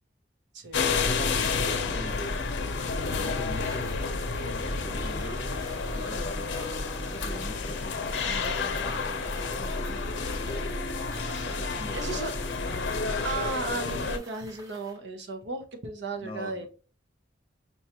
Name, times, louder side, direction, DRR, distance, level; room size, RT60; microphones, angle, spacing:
voice 1, 0.5-1.1 11.9-12.3 13.2-16.7, right 3 dB, 70° right, 0.7 m, -35 dB
sound 1, 0.7-14.2, left 4 dB, 75° left, 0.6 m, -30 dB
voice 2, 1.0-2.4 3.1-4.0 4.5-5.5 5.9-10.8 11.5-13.1 16.1-16.7, equal, 30° left, 0.7 m, -42 dB
sound 2, 2.0-15.0, equal, 20° right, 0.6 m, -51 dB
5.3 x 2.3 x 2.9 m
head